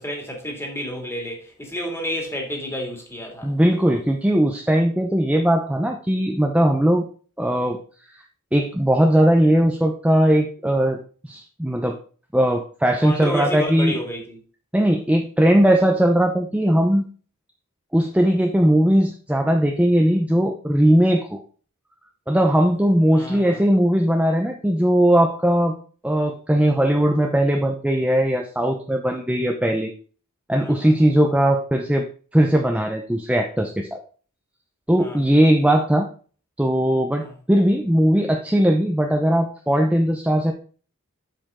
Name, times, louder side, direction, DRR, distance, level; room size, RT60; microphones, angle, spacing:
voice 1, 0.0-3.5 13.0-14.4 23.1-23.6 30.6-30.9 35.0-35.2 37.2-37.3, equal, 10° left, 2.4 m, -30 dB
voice 2, 3.4-7.0 7.4-7.8 8.5-11.0 11.2-12.0 12.3-14.0 14.7-17.0 17.9-21.4 22.3-25.8 26.0-29.9 30.5-32.0 32.3-34.0 34.9-36.1 36.6-40.5, right 1 dB, 5° right, 0.7 m, -19 dB
7.7 x 6.9 x 3.7 m
head